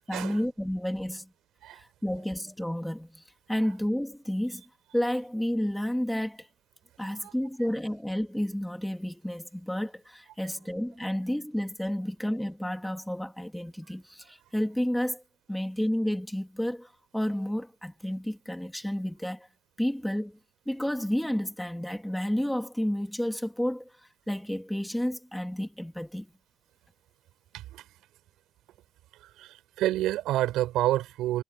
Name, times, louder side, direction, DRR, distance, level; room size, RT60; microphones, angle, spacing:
voice 1, 0.1-1.3 1.7-4.6 4.9-6.5 7.0-15.2 15.5-19.5 19.8-20.4 20.6-23.9 24.3-26.3, equal, ahead, 1.6 m, -31 dB
voice 2, 7.0-7.3 10.4-10.5 27.5-27.8 29.2-31.4, right 14 dB, 85° right, 4.8 m, -29 dB
cardioid pair, 170°, 0 cm